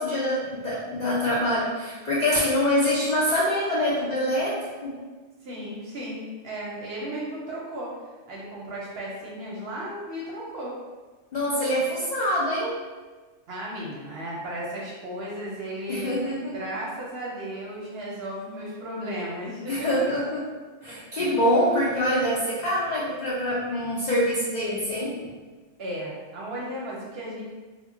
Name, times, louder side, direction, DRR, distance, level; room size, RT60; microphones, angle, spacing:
voice 1, 0.0-5.0 11.3-12.8 15.9-16.6 19.7-20.4 20.8-25.2, left 1 dB, 65° left, -7 dB, 0.4 m, -25 dB
voice 2, 5.4-7.9 8.3-10.7 13.5-16.1 16.5-19.9 21.2-21.6 25.8-27.4, right 1 dB, 60° right, -4 dB, 0.7 m, -35 dB
2.2 x 2.1 x 3.6 m, 1.3 s
omnidirectional pair, 1.4 m